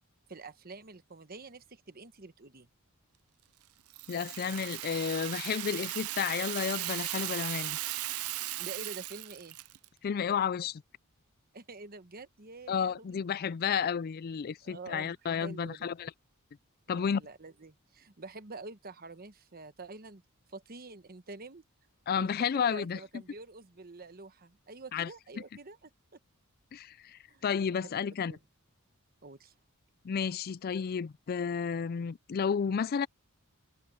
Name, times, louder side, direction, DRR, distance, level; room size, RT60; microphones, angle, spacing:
voice 1, 0.3-2.7 8.6-9.6 11.5-13.2 14.6-15.9 16.9-20.2 20.5-21.6 22.2-25.9 27.3-27.4 27.7-28.4 29.2-29.5, right 3 dB, 45° right, 1.1 m, -47 dB
Rattle (instrument), 3.9-9.9, right 16 dB, 90° right, 0.6 m, -37 dB
voice 2, 4.1-7.8 10.0-10.8 12.7-16.1 16.9-17.2 22.1-23.0 24.9-25.1 26.7-28.4 30.0-33.1, left 7 dB, 45° left, 0.3 m, -32 dB
head